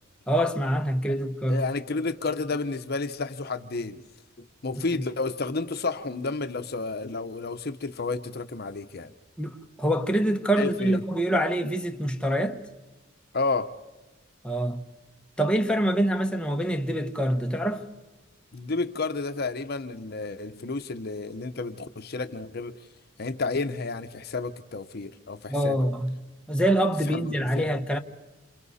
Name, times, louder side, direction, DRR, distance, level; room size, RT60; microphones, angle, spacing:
voice 1, 0.3-1.6 4.9-5.0 9.4-12.6 14.4-14.8 15.4-17.9 25.5-26.1 26.5-28.0, right 1 dB, 5° left, 1.2 m, -25 dB
voice 2, 1.5-4.0 4.6-9.1 10.6-11.0 13.3-13.7 18.5-22.7 23.2-25.8 27.1-27.7, left 3 dB, 55° left, 0.8 m, -31 dB
28.5 x 27.5 x 4.2 m
head